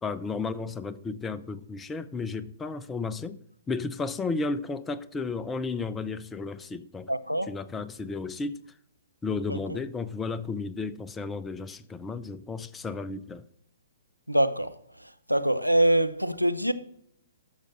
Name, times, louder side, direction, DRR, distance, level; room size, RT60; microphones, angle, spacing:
voice 1, 0.0-3.4 3.7-7.1 7.5-8.6 9.2-13.4, left 4 dB, 10° left, 0.4 m, -33 dB
voice 2, 7.1-7.5 9.5-9.6 14.3-14.7 15.3-16.7, right 1 dB, 90° right, 0.6 m, -24 dB
13.0 x 6.4 x 3.1 m
figure-of-eight pair, 120°, 0 cm